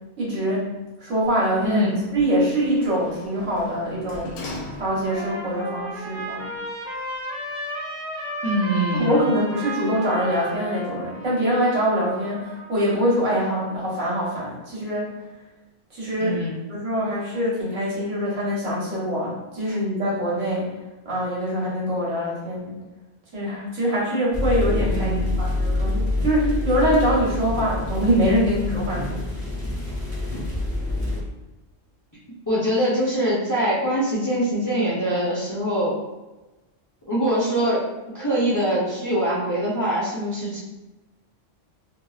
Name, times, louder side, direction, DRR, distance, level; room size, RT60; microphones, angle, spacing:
voice 1, 0.2-0.7 1.0-4.3 4.7-6.5 8.9-15.1 15.9-16.4 16.7-20.7 21.0-22.7 23.3-29.5, equal, 80° right, -6 dB, 1.4 m, -24 dB
Sliding door, 1.2-5.4 5.8-5.9, left 2 dB, 65° left, 0.8 m, -40 dB
voice 2, 1.6-1.9 8.4-9.3 16.2-16.6 19.7-19.8 24.9-25.3 32.5-35.9 37.1-37.9 38.1-40.6, right 1 dB, 25° left, -8 dB, 0.5 m, -23 dB
Trumpet, 4.3-12.8, equal, 50° right, 0.5 m, -34 dB
sound 1, 24.3-31.2, left 2 dB, 30° right, 0.9 m, -26 dB
2.8 x 2.7 x 2.3 m, 1.1 s
omnidirectional pair, 1.3 m